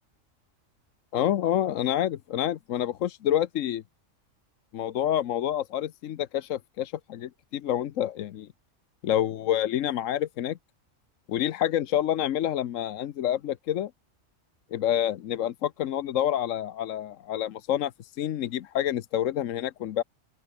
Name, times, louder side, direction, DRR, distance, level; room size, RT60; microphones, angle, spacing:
voice 1, 1.1-3.8 4.7-8.5 9.0-10.6 11.3-13.9 14.7-20.0, left 11 dB, 80° left, 1.1 m, -28 dB
open air
omnidirectional pair, 1.3 m